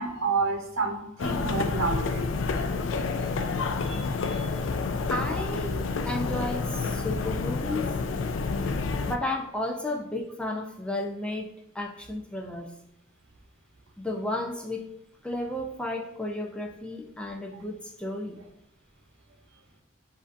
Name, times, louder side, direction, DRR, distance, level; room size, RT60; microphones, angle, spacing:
voice 1, 0.0-2.3 2.9-3.0 3.8-4.5 17.5-17.6, right 4 dB, 85° right, 4 dB, 0.9 m, -30 dB
sound 1, 1.2-9.2, left 4 dB, 65° left, 0.4 m, -29 dB
voice 2, 5.1-7.9 9.1-12.7 14.0-14.9 15.2-18.4, left 1 dB, 5° left, 1 dB, 0.4 m, -33 dB
7.2 x 2.6 x 2.6 m, 0.85 s
head